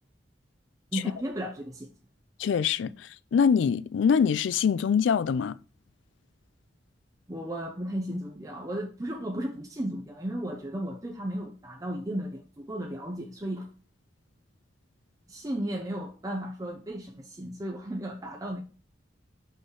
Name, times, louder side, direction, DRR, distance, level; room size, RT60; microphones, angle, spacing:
voice 1, 0.9-1.9 7.3-13.7 15.3-18.6, right 1 dB, 20° right, 0.6 m, -34 dB
voice 2, 2.4-5.6, left 7 dB, 85° left, 0.3 m, -24 dB
5.4 x 3.2 x 5.4 m
head